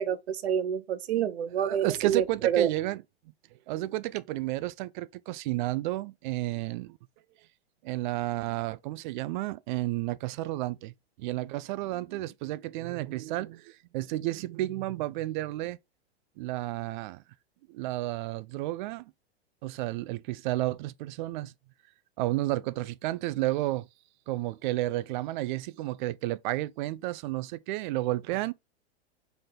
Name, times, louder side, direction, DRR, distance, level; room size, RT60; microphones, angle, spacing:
voice 1, 0.0-2.7, right 9 dB, 80° right, 0.8 m, -28 dB
voice 2, 1.6-3.0 3.7-7.0 7.8-10.9 11.2-15.8 16.4-17.2 17.7-19.1 19.6-21.5 22.2-23.9 24.3-28.5, right 17 dB, 50° right, 0.5 m, -31 dB
3.7 x 3.5 x 3.7 m
hypercardioid pair, 110°, 32 cm